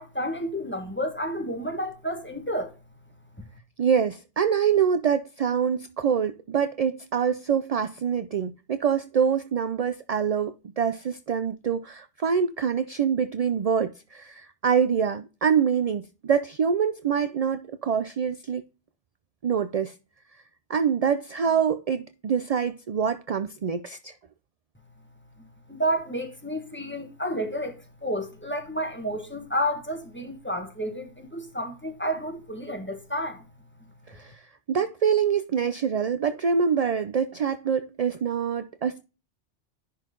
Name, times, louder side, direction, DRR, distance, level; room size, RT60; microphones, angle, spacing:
voice 1, 0.0-2.7 25.7-33.4, equal, 10° left, 1.5 m, -30 dB
voice 2, 3.8-18.6 19.4-19.9 20.7-24.1 34.1-34.4 34.7-39.0, right 7 dB, 55° right, 0.4 m, -25 dB
10.5 x 4.0 x 3.8 m
omnidirectional pair, 1.2 m